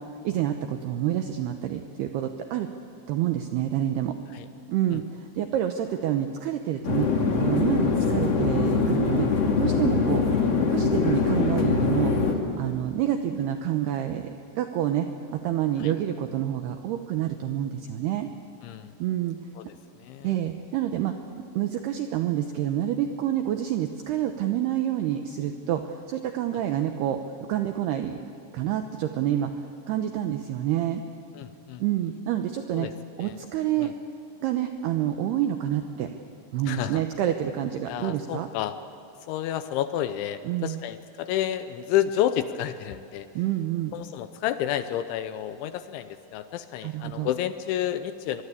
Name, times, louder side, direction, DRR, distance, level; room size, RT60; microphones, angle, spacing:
voice 1, 0.0-2.7 3.1-4.1 4.7-7.1 7.4-10.4 10.7-12.1 12.6-14.3 14.6-18.3 19.0-19.4 20.2-21.1 21.5-27.2 27.5-28.2 28.5-31.0 31.8-32.9 33.2-33.9 34.4-36.1 36.5-38.5 40.4-40.8 43.3-44.0 46.8-47.3, right 11 dB, 80° right, 6 dB, 2.3 m, -28 dB
sound 1, 6.8-12.3, left 4 dB, 45° left, 2.3 m, -23 dB
voice 2, 19.6-20.3 31.3-31.8 32.7-32.9 33.2-33.4 33.8-33.9 36.7-37.0 37.9-38.7 39.3-43.3 43.9-48.4, left 11 dB, 80° left, 11 dB, 2.8 m, -30 dB
24.5 x 22.0 x 8.3 m, 3.0 s
omnidirectional pair, 5.9 m